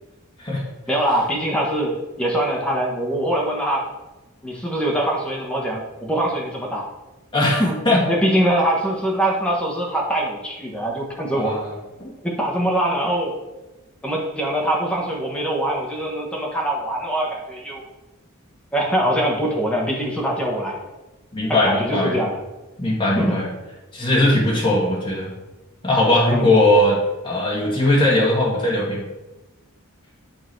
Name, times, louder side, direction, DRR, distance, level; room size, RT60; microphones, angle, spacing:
voice 1, 0.9-3.8 4.4-6.9 7.6-7.8 8.1-11.5 12.2-13.3 14.0-17.8 18.7-20.8 21.5-22.4 23.1-23.4 26.3-26.5, right 1 dB, 5° left, -2 dB, 1.3 m, -23 dB
voice 2, 7.3-8.0 11.3-11.7 12.0-12.1 21.3-22.2 22.8-23.5 23.9-25.3 25.8-27.0 27.2-29.1, left 1 dB, 25° left, -4 dB, 2.0 m, -19 dB
8.9 x 4.0 x 4.6 m, 1.1 s
head